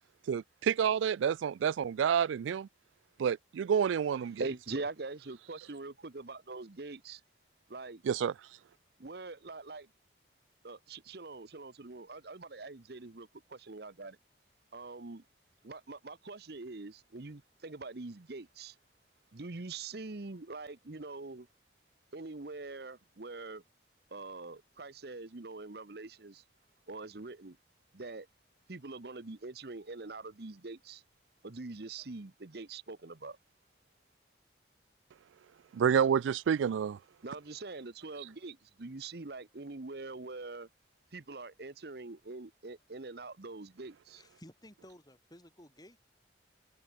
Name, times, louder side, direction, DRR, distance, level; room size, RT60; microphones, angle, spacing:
voice 1, 0.3-2.7 3.2-4.5 8.0-8.3 35.7-37.0, right 7 dB, 85° right, 0.3 m, -29 dB
voice 2, 4.4-7.2 7.7-8.0 9.0-9.9 10.6-14.2 14.7-15.2 15.6-18.7 19.3-21.5 22.1-23.6 24.1-26.4 26.9-27.6 27.9-28.3 28.7-31.0 31.4-33.4 37.2-40.7 41.1-44.2, right 3 dB, 55° right, 0.9 m, -43 dB
voice 3, 44.1-46.1, left 1 dB, 20° left, 6.8 m, -55 dB
head